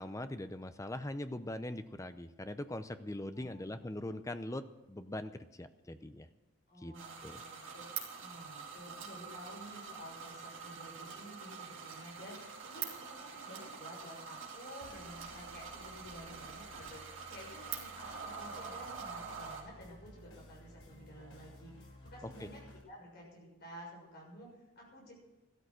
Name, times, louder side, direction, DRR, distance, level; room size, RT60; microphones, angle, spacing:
voice 1, 0.0-6.3 6.8-6.9 7.2-7.4, left 1 dB, 15° left, 10 dB, 0.6 m, -41 dB
voice 2, 3.3-3.7 6.7-7.9 8.2-22.6 22.8-25.1, equal, 45° left, -2 dB, 6.7 m, -52 dB
sound 1, 6.9-19.6, right 6 dB, 60° right, 2.9 m, -45 dB
sound 2, 14.8-22.8, left 1 dB, 65° left, 4.1 m, -56 dB
13.5 x 13.0 x 6.3 m, 1.1 s
head